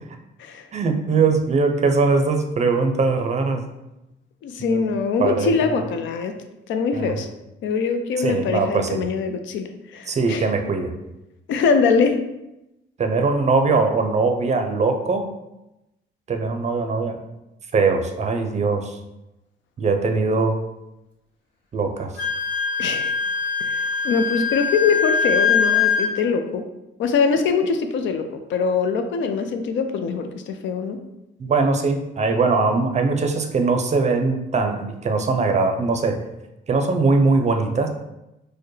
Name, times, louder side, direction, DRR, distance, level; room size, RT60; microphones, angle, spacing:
voice 1, 0.7-3.6 4.6-4.8 5.2-5.8 6.9-7.2 8.2-9.0 10.1-10.9 13.0-15.3 16.3-17.2 17.7-19.0 19.8-20.6 21.7-22.1 31.4-36.2 36.7-37.9, right 4 dB, 35° right, 5 dB, 0.5 m, -21 dB
voice 2, 4.4-6.4 6.7-7.3 7.6-10.5 11.5-12.2 22.8-23.1 23.6-26.6 27.0-31.0, left 5 dB, 70° left, 7 dB, 0.4 m, -23 dB
Wind instrument woodwind instrument, 22.1-26.1, left 5 dB, 5° left, 1.2 m, -22 dB
4.4 x 2.1 x 3.1 m, 0.94 s
cardioid pair, 90°, 20 cm